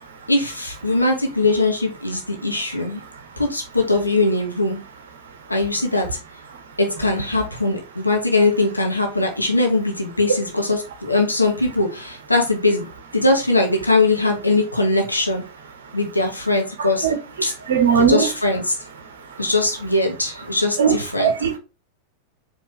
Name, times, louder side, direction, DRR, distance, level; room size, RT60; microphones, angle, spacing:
voice 1, 0.3-3.0 3.4-4.8 5.5-6.2 6.8-15.4 15.9-17.1 17.4-17.5 18.0-18.7 19.4-21.3, left 2 dB, 85° left, 0.9 m, -21 dB
voice 2, 17.7-18.2 20.8-20.9 21.2-21.6, right 7 dB, 60° right, 0.8 m, -17 dB
4.6 x 3.2 x 3.1 m
figure-of-eight pair, 90°, 0 cm